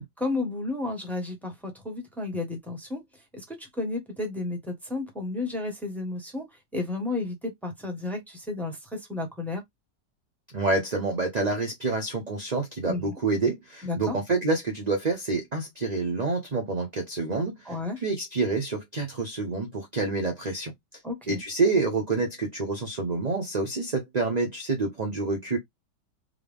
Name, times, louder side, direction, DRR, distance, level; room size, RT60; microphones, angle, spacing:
voice 1, 0.2-3.0 3.3-6.5 6.7-9.6 12.9-13.1 13.8-14.1 17.7-18.0 21.0-21.4, left 2 dB, ahead, 1.1 m, -32 dB
voice 2, 10.5-20.7 21.3-25.6, right 3 dB, 35° right, 0.6 m, -28 dB
3.8 x 2.8 x 3.4 m
omnidirectional pair, 1.9 m